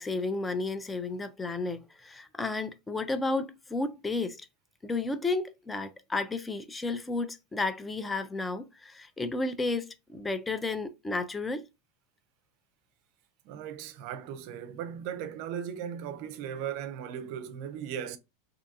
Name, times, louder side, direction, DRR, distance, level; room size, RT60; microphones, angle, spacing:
voice 1, 0.0-4.4 4.8-11.7, left 3 dB, 10° left, 0.4 m, -32 dB
voice 2, 13.4-18.2, right 9 dB, 55° right, 0.4 m, -37 dB
2.6 x 2.2 x 2.6 m
hypercardioid pair, 110°, 0 cm